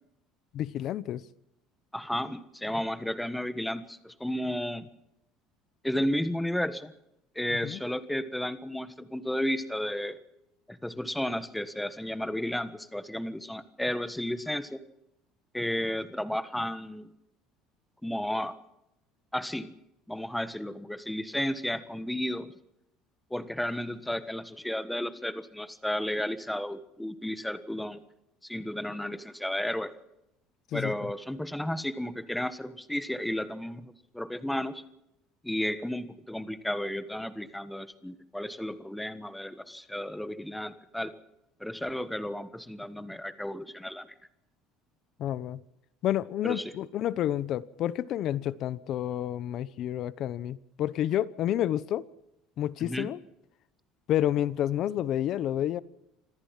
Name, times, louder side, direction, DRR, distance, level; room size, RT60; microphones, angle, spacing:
voice 1, 0.5-1.2 7.6-7.8 30.7-30.9 45.2-45.6 46.0-52.0 52.6-53.2 54.1-55.8, left 11 dB, 50° left, 18 dB, 0.9 m, -29 dB
voice 2, 1.9-4.9 5.8-6.9 7.3-10.2 10.7-14.8 15.5-17.1 18.0-18.5 19.3-19.7 20.1-22.5 23.3-28.0 28.4-29.9 30.7-34.8 35.4-41.1 41.6-44.1 46.4-46.7 52.8-53.1, left 1 dB, 5° left, 12 dB, 1.4 m, -33 dB
26.5 x 14.0 x 7.5 m, 0.83 s
cardioid pair, 140°, 0 cm